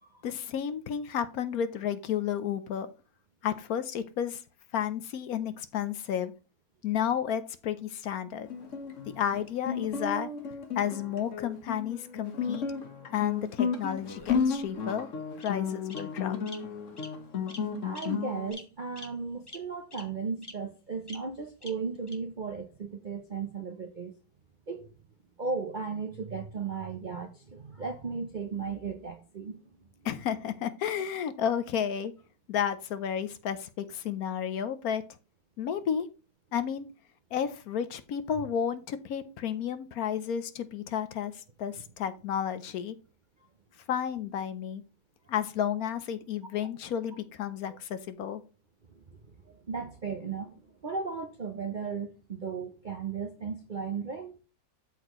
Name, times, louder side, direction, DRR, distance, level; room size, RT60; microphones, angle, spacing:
voice 1, 0.2-2.9 3.4-4.4 4.7-6.3 6.8-8.5 9.2-10.3 10.7-12.6 13.1-15.1 15.4-16.4 30.0-32.1 32.5-35.0 35.6-36.1 36.5-36.9 37.3-42.9 43.9-44.8 45.3-48.4, left 8 dB, 70° left, 1.1 m, -32 dB
Guitar, 8.5-18.5, left 6 dB, 50° left, 1.3 m, -33 dB
Bird vocalization bird call bird song, 14.0-14.7 15.4-15.5 15.9-16.0 16.5-16.6 17.0-17.1 17.5-17.6 17.9-18.1 18.5-18.6 19.0-19.1 19.5-19.6 19.9-20.0 20.4-20.5 21.1-21.2 21.6-21.7 22.1-22.2, left 2 dB, 15° left, 1.0 m, -44 dB
voice 2, 17.8-24.2 24.7-25.0 25.4-29.6 38.4-38.5 48.9-49.2 49.4-54.4, right 5 dB, 50° right, 0.5 m, -36 dB
12.5 x 4.2 x 3.0 m
omnidirectional pair, 1.8 m